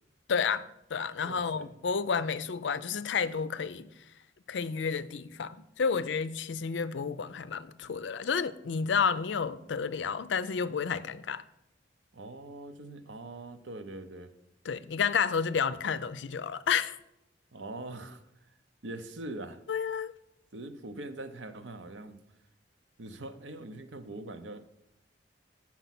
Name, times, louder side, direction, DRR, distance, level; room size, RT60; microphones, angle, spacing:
voice 1, 0.3-0.6 0.9-3.9 4.5-11.4 14.6-17.0 19.7-20.1, left 6 dB, 80° left, 0.5 m, -30 dB
voice 2, 1.2-1.7 12.1-14.3 17.5-18.2 18.8-19.6 20.5-22.2 23.0-24.6, right 2 dB, 90° right, 0.8 m, -42 dB
8.2 x 6.0 x 5.9 m
head